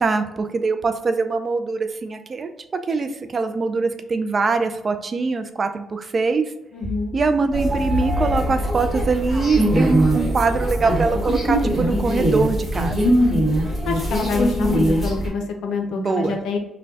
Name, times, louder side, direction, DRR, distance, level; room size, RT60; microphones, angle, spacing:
voice 1, 0.0-6.5 7.1-13.2 15.9-16.4, right 4 dB, 40° right, 8 dB, 0.4 m, -23 dB
voice 2, 6.7-7.2 13.1-13.5 13.9-16.6, left 4 dB, 80° left, 3 dB, 0.6 m, -26 dB
sound 1, 7.5-15.3, equal, 5° left, 1.4 m, -21 dB
3.3 x 2.2 x 3.9 m, 0.91 s
cardioid pair, 90°, 0 cm